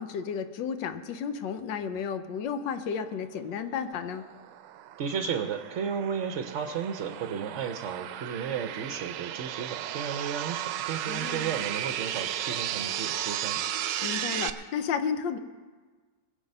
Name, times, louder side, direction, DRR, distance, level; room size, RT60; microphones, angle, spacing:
voice 1, 0.0-4.2 11.1-11.5 14.0-15.4, left 7 dB, 85° left, 9 dB, 1.5 m, -32 dB
sound 1, 3.7-14.5, right 11 dB, 85° right, 1.2 m, -34 dB
voice 2, 5.0-13.6, right 7 dB, 60° right, 7 dB, 0.8 m, -33 dB
21.5 x 7.3 x 5.4 m, 1.4 s
omnidirectional pair, 1.9 m